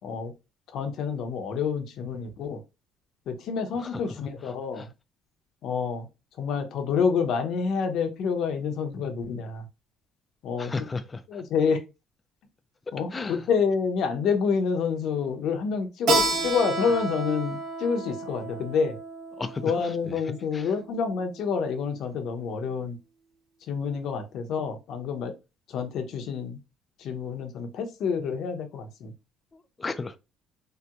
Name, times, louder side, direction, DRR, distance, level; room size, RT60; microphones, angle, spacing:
voice 1, 0.0-0.3 0.7-2.6 3.3-4.9 5.6-6.1 6.4-9.6 10.4-10.7 11.3-11.8 12.9-19.0 19.6-22.9 23.7-25.3 25.7-26.6 27.0-29.1, left 6 dB, 55° left, 0.6 m, -28 dB
voice 2, 3.7-4.9 10.6-11.8 13.1-13.5 16.8-16.9 19.3-20.8 29.5-30.2, left 4 dB, 20° left, 0.3 m, -36 dB
Keyboard (musical), 16.1-21.3, right 3 dB, 60° right, 0.9 m, -31 dB
3.3 x 2.8 x 2.3 m
cardioid pair, 155°, 0 cm